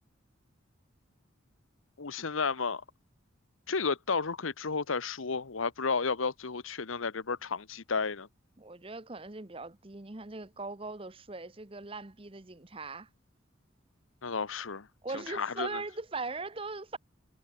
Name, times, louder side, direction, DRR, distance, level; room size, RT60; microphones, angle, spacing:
voice 1, 2.0-2.8 3.7-8.3 14.2-14.9 15.3-15.8, left 4 dB, 85° left, 1.1 m, -32 dB
voice 2, 8.6-13.1 15.0-17.0, right 3 dB, 25° right, 1.0 m, -40 dB
head